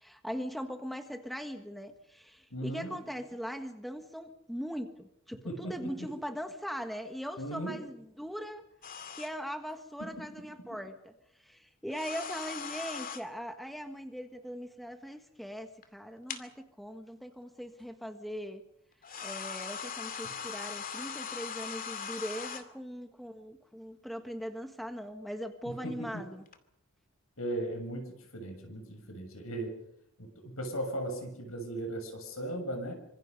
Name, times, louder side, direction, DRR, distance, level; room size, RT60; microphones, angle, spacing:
voice 1, 0.0-8.6 9.1-11.1 11.4-18.6 19.2-26.4, equal, ahead, 6 dB, 1.5 m, -40 dB
voice 2, 2.5-2.9 5.4-6.1 7.4-7.8 10.0-10.1 20.2-20.4 25.7-26.1 27.4-29.7 30.2-32.9, right 1 dB, 70° left, 5 dB, 7.1 m, -37 dB
sound 1, 8.8-9.3 11.9-13.2 15.8-15.9 16.3-16.4 17.8-17.9 19.0-22.6 26.5-26.6, left 7 dB, 40° left, 2.3 m, -40 dB
26.5 x 26.0 x 5.5 m, 0.77 s
head